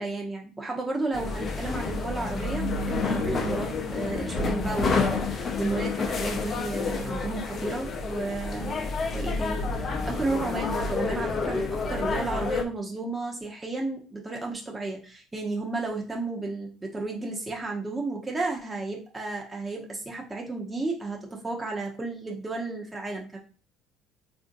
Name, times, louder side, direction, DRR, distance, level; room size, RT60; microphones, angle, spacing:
voice 1, 0.0-8.8 9.1-23.4, right 3 dB, 20° right, -1 dB, 0.7 m, -33 dB
sound 1, 1.1-12.6, left 4 dB, 45° left, 0.5 m, -29 dB
3.6 x 2.5 x 2.6 m, 0.39 s
hypercardioid pair, 70°, 0 cm